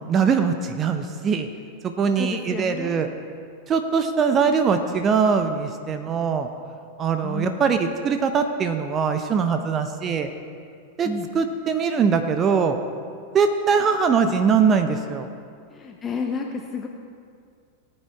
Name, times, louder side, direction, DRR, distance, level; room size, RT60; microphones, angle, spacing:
voice 1, 0.1-1.5 1.8-3.1 3.7-6.5 7.0-10.3 11.0-11.1 11.3-12.8 13.3-15.3, right 6 dB, 25° right, 7 dB, 0.8 m, -22 dB
voice 2, 2.2-3.0 7.2-7.6 11.0-11.3 15.7-16.9, left 4 dB, 20° left, 2 dB, 1.1 m, -30 dB
18.5 x 8.8 x 4.7 m, 2.2 s
figure-of-eight pair, 90°, 0 cm